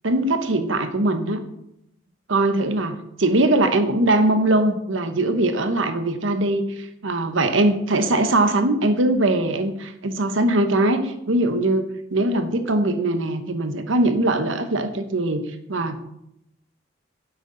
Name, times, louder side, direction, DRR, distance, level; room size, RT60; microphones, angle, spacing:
voice 1, 0.0-1.4 2.3-15.4 15.7-16.0, right 2 dB, 75° right, 8 dB, 1.0 m, -21 dB
9.3 x 7.9 x 3.9 m, 0.80 s
head